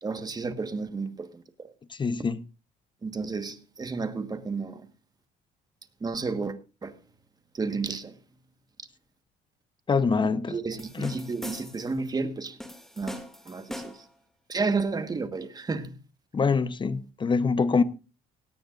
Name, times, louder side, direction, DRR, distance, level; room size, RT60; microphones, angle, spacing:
voice 1, 0.0-1.7 3.0-4.8 6.0-6.6 6.8-7.0 7.5-8.2 10.5-12.6 13.0-14.0 14.5-16.0, right 4 dB, 25° right, 1.4 m, -32 dB
voice 2, 1.9-2.4 9.9-10.6 10.9-11.1 16.3-17.8, left 5 dB, 30° left, 0.8 m, -24 dB
sound 1, 10.8-12.0 12.6-14.2, left 1 dB, ahead, 2.3 m, -41 dB
17.5 x 17.0 x 2.5 m
cardioid pair, 110°, 17 cm